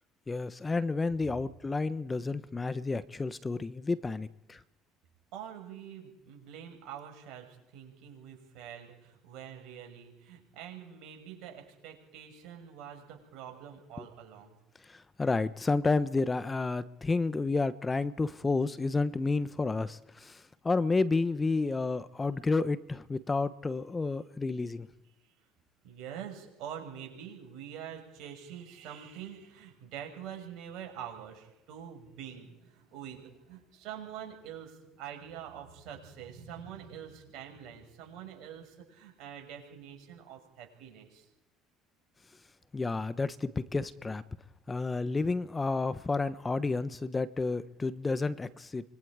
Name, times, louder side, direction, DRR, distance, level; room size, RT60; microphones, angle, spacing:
voice 1, 0.3-4.6 14.0-14.1 15.2-20.3 20.6-24.9 42.7-44.2 44.7-48.8, left 3 dB, 25° left, 14 dB, 1.1 m, -30 dB
voice 2, 5.3-14.6 25.8-41.2, right 9 dB, 65° right, 3 dB, 6.3 m, -45 dB
25.5 x 22.0 x 5.0 m, 0.92 s
hypercardioid pair, 65°, 0 cm